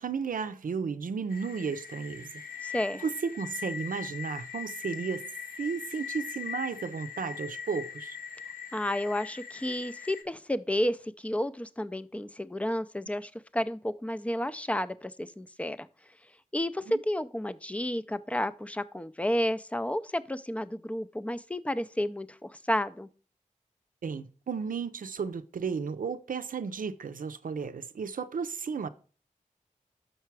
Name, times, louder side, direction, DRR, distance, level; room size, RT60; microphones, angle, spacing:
voice 1, 0.0-2.7 3.0-5.3 5.6-8.2 16.9-17.0 24.0-28.9, right 5 dB, 85° right, 0.5 m, -34 dB
sound 1, 1.3-10.2, left 7 dB, 85° left, 1.0 m, -41 dB
voice 2, 2.6-3.0 8.7-15.9 16.5-23.1, left 1 dB, 10° left, 0.4 m, -31 dB
6.6 x 5.8 x 4.6 m
wide cardioid pair, 65°, 14 cm